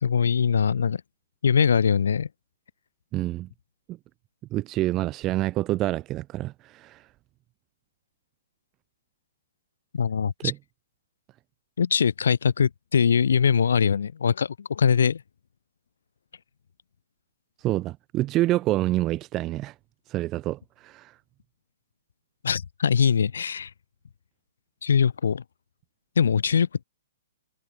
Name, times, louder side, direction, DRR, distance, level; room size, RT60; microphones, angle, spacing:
voice 1, 0.0-1.0 1.4-2.3 9.9-10.5 11.8-15.2 22.4-23.7 24.8-25.4 26.2-26.8, left 7 dB, 75° left, 1.0 m, -22 dB
voice 2, 3.1-3.5 3.9-4.0 4.5-7.1 10.4-10.6 17.6-19.7 20.1-21.2, right 16 dB, 20° right, 0.3 m, -27 dB
hypercardioid pair, 160°, 0 cm